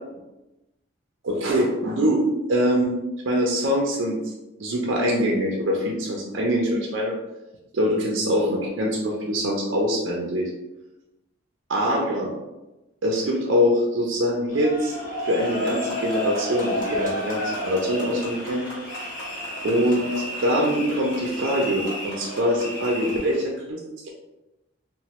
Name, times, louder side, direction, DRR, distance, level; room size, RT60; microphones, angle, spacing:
voice 1, 1.2-2.2 2.5-2.9 3.3-4.2 4.6-7.2 7.7-10.5 11.7-12.3 13.0-14.9 15.3-18.6 19.6-23.8, equal, 70° right, -2 dB, 0.5 m, -23 dB
sound 1, 14.5-23.4, equal, 45° left, 0.9 m, -31 dB
3.0 x 2.1 x 2.9 m, 1.0 s
head